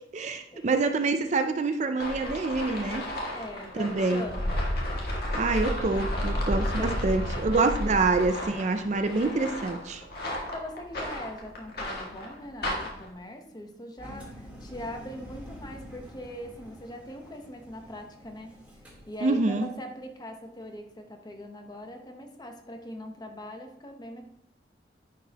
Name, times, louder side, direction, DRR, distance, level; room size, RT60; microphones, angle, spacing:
voice 1, 0.1-3.1 3.7-4.2 5.3-10.0 19.2-19.7, right 3 dB, 40° right, 7 dB, 0.5 m, -26 dB
sound 1, 2.0-13.1, left 1 dB, 60° left, 1.7 m, -32 dB
voice 2, 3.3-4.5 6.3-7.4 10.2-18.5 19.1-24.2, equal, 25° left, 4 dB, 0.9 m, -41 dB
Engine, 14.0-19.8, equal, 10° right, 1.6 m, -47 dB
10.5 x 4.6 x 3.0 m, 0.77 s
head